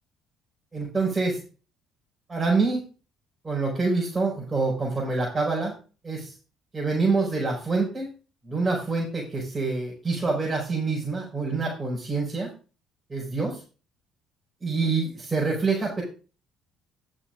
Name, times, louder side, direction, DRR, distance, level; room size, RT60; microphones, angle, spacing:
voice 1, 0.7-1.4 2.3-2.8 3.4-5.7 6.0-6.3 6.7-8.1 8.4-12.5 13.1-13.6 14.6-16.0, right 3 dB, 25° right, -6 dB, 5.6 m, -26 dB
20.0 x 6.8 x 2.6 m, 0.35 s
hypercardioid pair, 55°, 0 cm